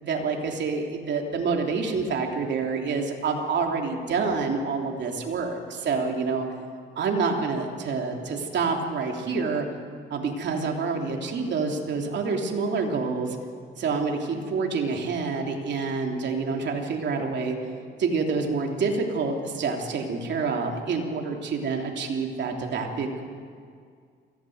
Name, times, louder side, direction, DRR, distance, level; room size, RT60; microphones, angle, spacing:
voice 1, 0.0-6.5 6.9-9.7 10.1-13.4 13.8-17.6 18.0-23.2, right 4 dB, 65° right, 1 dB, 3.2 m, -27 dB
23.0 x 16.0 x 7.9 m, 2.2 s
cardioid pair, 90°, 20 cm